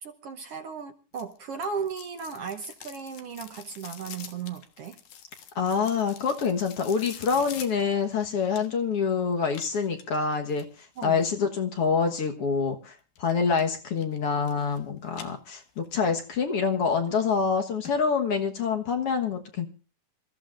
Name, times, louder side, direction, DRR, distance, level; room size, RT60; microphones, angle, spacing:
voice 1, 0.0-5.0 11.0-11.2, right 6 dB, 60° right, 7 dB, 1.8 m, -36 dB
sound 1, 1.1-8.9 9.5-11.2 13.2-13.7 14.0-14.8 15.1-16.0 16.4-16.5 17.1-17.2 17.5-17.6 17.9-18.0 18.3-18.4, left 8 dB, 85° left, 3.0 m, -46 dB
voice 2, 5.6-19.7, left 5 dB, 55° left, 4 dB, 2.1 m, -26 dB
26.5 x 14.5 x 2.5 m, 0.35 s
omnidirectional pair, 3.5 m